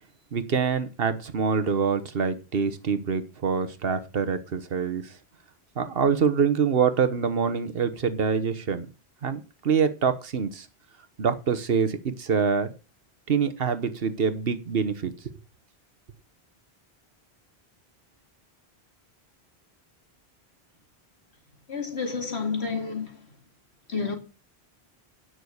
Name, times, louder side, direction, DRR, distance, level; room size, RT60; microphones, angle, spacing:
voice 1, 0.3-5.0 5.8-8.9 9.2-10.6 11.2-12.7 13.3-15.1, right 6 dB, 65° right, 1.2 m, -25 dB
voice 2, 21.7-23.3 23.9-24.1, left 5 dB, 90° left, 2.7 m, -30 dB
9.5 x 6.2 x 6.4 m
omnidirectional pair, 1.1 m